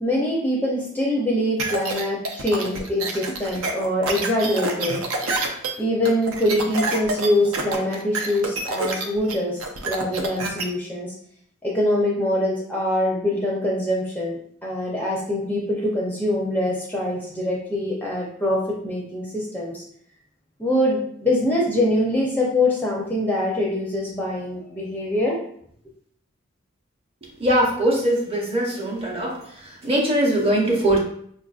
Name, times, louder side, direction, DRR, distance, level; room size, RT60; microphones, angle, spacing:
voice 1, 0.0-5.0 5.8-11.1 11.6-19.8 20.6-25.4, left 1 dB, 10° left, -3 dB, 0.5 m, -24 dB
sound 1, 1.6-10.6, right 3 dB, 80° right, 0.5 m, -27 dB
voice 2, 27.4-29.4 29.8-31.0, right 1 dB, 30° right, -2 dB, 0.7 m, -21 dB
4.7 x 2.5 x 2.3 m, 0.65 s
head